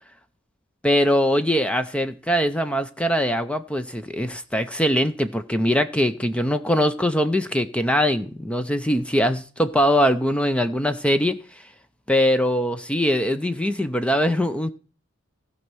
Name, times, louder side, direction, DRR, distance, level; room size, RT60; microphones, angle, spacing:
voice 1, 0.8-11.4 12.1-14.7, equal, 5° left, 0.5 m, -22 dB
16.0 x 5.5 x 6.1 m
head